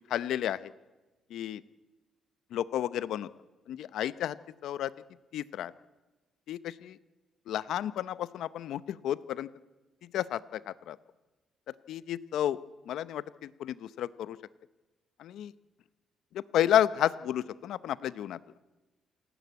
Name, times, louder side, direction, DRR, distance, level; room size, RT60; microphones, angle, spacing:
voice 1, 0.1-0.7 1.3-1.6 2.5-3.3 3.7-4.4 4.6-4.9 5.3-5.7 6.5-7.0 7.5-9.5 10.1-11.0 11.9-12.6 12.9-13.2 13.6-14.4 15.2-15.5 16.5-18.4, left 11 dB, 80° left, 17 dB, 0.7 m, -31 dB
27.5 x 11.0 x 9.5 m, 1.2 s
cardioid pair, 90°, 0 cm